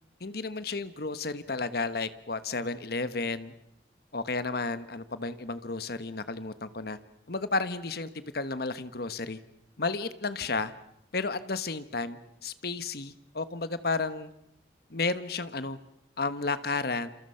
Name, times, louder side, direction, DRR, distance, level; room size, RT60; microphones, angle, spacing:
voice 1, 0.2-3.5 4.1-7.0 7.3-8.1 8.3-9.4 9.8-10.7 11.1-14.3 14.9-15.8 16.2-17.1, left 3 dB, 55° left, 12 dB, 1.3 m, -32 dB
28.5 x 27.5 x 5.7 m, 0.84 s
head